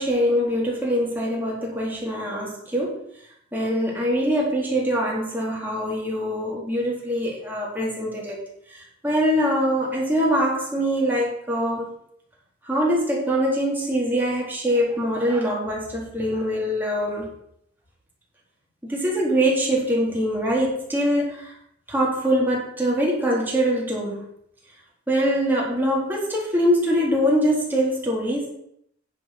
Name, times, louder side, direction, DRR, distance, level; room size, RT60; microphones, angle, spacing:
voice 1, 0.0-3.0 3.5-8.4 9.0-11.9 12.7-17.3 18.8-21.5 21.9-24.3 25.1-28.5, equal, 10° right, -4 dB, 4.1 m, -23 dB
10.0 x 7.9 x 6.1 m, 0.72 s
head